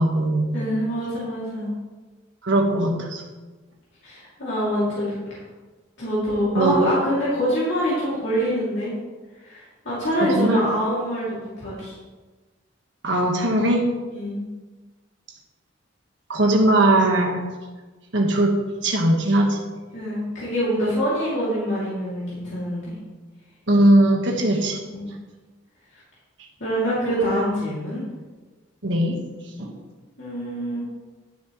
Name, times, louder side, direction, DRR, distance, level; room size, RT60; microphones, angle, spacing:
voice 1, 0.0-0.6 2.4-3.2 6.5-7.0 10.2-10.6 13.0-13.9 16.3-17.4 18.1-18.5 18.8-19.6 23.7-24.8 28.8-29.2 29.6-29.7, right 1 dB, 65° right, 0 dB, 1.5 m, -19 dB
voice 2, 0.5-1.7 4.0-5.4 6.0-8.9 9.4-12.0 14.1-14.4 19.9-23.0 24.9-25.1 25.9-26.0 26.6-28.0 30.2-30.8, equal, 60° left, -9 dB, 2.8 m, -25 dB
11.0 x 7.2 x 3.2 m, 1.3 s
head